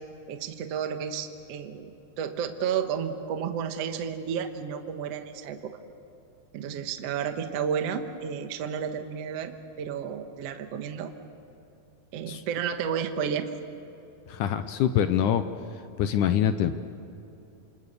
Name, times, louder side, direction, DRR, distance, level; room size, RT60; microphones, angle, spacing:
voice 1, 0.3-1.9 2.2-5.8 6.5-11.1 12.1-13.5, right 7 dB, 60° right, 6 dB, 1.7 m, -32 dB
voice 2, 14.3-15.4 16.0-16.8, left 9 dB, 75° left, 10 dB, 1.9 m, -24 dB
27.5 x 27.0 x 6.7 m, 2.8 s
omnidirectional pair, 4.4 m